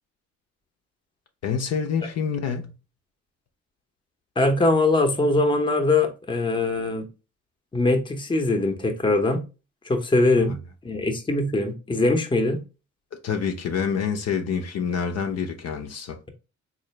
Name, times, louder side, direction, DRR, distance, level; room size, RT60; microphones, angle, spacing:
voice 1, 1.4-2.7 10.4-10.6 13.2-16.2, left 6 dB, 55° left, 0.6 m, -27 dB
voice 2, 4.4-7.1 7.7-9.4 9.8-10.6 10.8-12.6, left 2 dB, 15° left, 0.7 m, -22 dB
3.8 x 2.5 x 3.1 m
cardioid pair, 90°, 30 cm